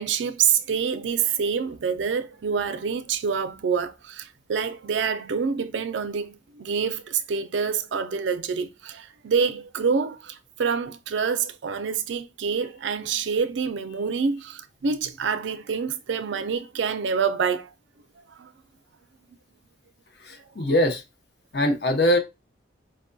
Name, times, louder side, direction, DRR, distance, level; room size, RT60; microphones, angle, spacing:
voice 1, 0.0-17.7 18.2-18.5, right 6 dB, 80° right, 0.4 m, -27 dB
voice 2, 20.2-21.0 21.5-22.2, left 1 dB, 60° left, 0.9 m, -22 dB
5.0 x 2.2 x 2.6 m
head